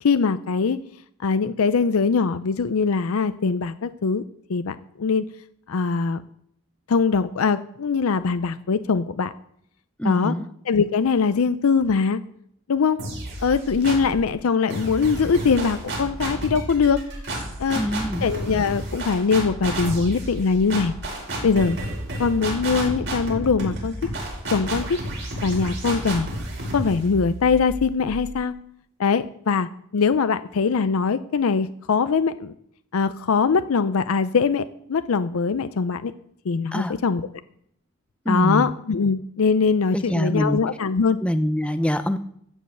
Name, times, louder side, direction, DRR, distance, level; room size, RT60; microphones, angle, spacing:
voice 1, 0.0-0.8 1.2-4.2 4.5-5.2 5.7-6.2 6.9-9.3 10.0-10.3 10.7-12.2 12.7-13.0 13.4-17.0 17.6-17.8 18.2-20.9 21.4-21.8 22.2-23.9 24.5-25.0 25.4-26.3 26.7-28.5 29.0-29.7 29.9-32.5 32.9-36.1 36.4-37.3 38.3-41.2, left 5 dB, 85° left, 12 dB, 0.5 m, -22 dB
voice 2, 10.0-10.5 17.7-18.3 36.7-37.0 38.2-38.7 39.9-40.6 41.2-42.2, equal, 5° left, 10 dB, 0.5 m, -24 dB
sound 1, 13.0-14.2 14.7-28.4, right 1 dB, 55° right, 5.1 m, -31 dB
14.0 x 5.5 x 7.9 m, 0.70 s
head